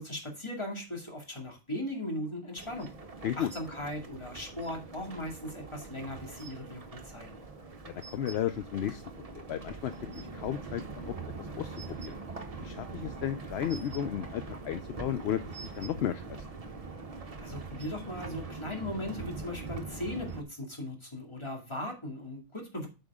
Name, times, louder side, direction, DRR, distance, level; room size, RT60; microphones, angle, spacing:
voice 1, 0.0-2.9 3.4-7.4 17.4-22.9, left 1 dB, 25° left, 1 dB, 2.3 m, -38 dB
sound 1, 2.6-20.4, right 4 dB, 35° right, 0.9 m, -43 dB
voice 2, 7.8-9.0 9.3-12.2 12.6-16.5, left 10 dB, 70° left, 11 dB, 0.8 m, -34 dB
8.8 x 5.6 x 3.6 m, 0.30 s
omnidirectional pair, 1.2 m